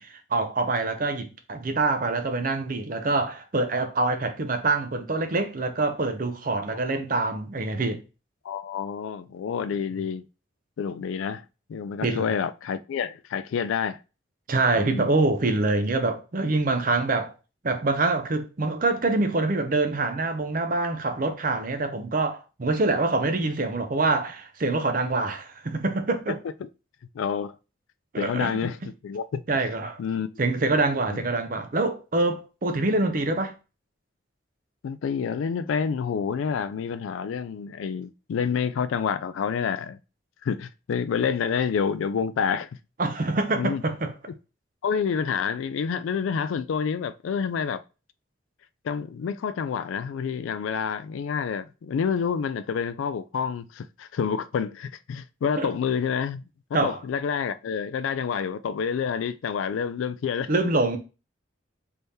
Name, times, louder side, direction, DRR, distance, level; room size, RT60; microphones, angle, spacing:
voice 1, 0.0-8.0 12.0-12.3 14.5-17.3 17.6-26.4 28.1-28.7 29.5-30.0 30.4-33.5 43.0-44.1 55.6-55.7 56.7-57.0 60.5-61.0, right 2 dB, 45° right, 0.6 m, -25 dB
voice 2, 8.4-10.2 10.8-11.4 11.7-14.0 14.7-15.1 26.6-26.7 27.1-27.6 28.2-28.8 29.0-29.4 30.0-30.4 31.1-31.2 34.8-40.0 40.4-42.7 43.6-43.8 44.8-47.8 48.8-56.4 56.8-60.5, left 6 dB, 85° left, 0.3 m, -28 dB
3.4 x 3.4 x 2.7 m
head